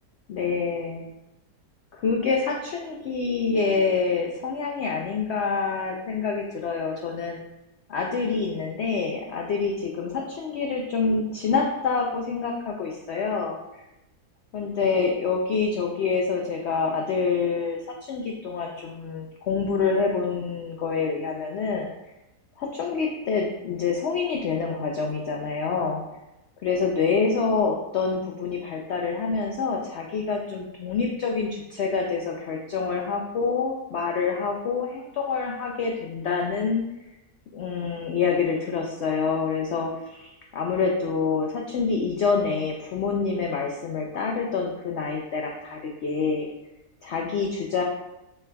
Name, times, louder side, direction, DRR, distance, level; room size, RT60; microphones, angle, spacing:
voice 1, 0.3-1.1 1.9-7.4 7.9-13.6 14.5-21.9 22.6-26.0 26.6-36.8 37.5-46.5 47.0-47.8, left 5 dB, 80° left, 1 dB, 0.6 m, -26 dB
7.1 x 3.4 x 2.2 m, 0.94 s
omnidirectional pair, 1.7 m